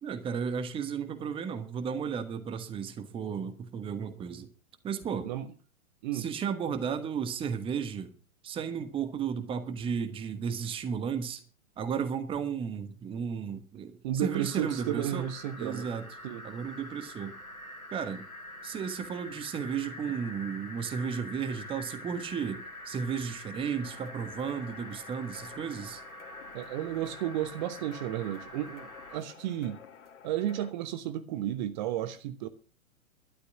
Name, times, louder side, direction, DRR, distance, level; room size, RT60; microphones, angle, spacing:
voice 1, 0.0-4.5 4.8-5.3 6.1-8.1 8.4-11.4 11.8-15.3 15.6-16.0 16.4-17.3 17.9-18.2 18.6-26.0, right 7 dB, 10° right, 1.2 m, -34 dB
voice 2, 14.0-15.9 16.2-16.4 26.5-29.8 30.2-32.5, right 11 dB, 35° right, 1.1 m, -33 dB
sound 1, 14.3-29.2, left 1 dB, 90° left, 2.4 m, -45 dB
sound 2, 23.8-30.7, left 7 dB, 55° left, 2.2 m, -52 dB
12.5 x 11.0 x 5.9 m
figure-of-eight pair, 115°, 42 cm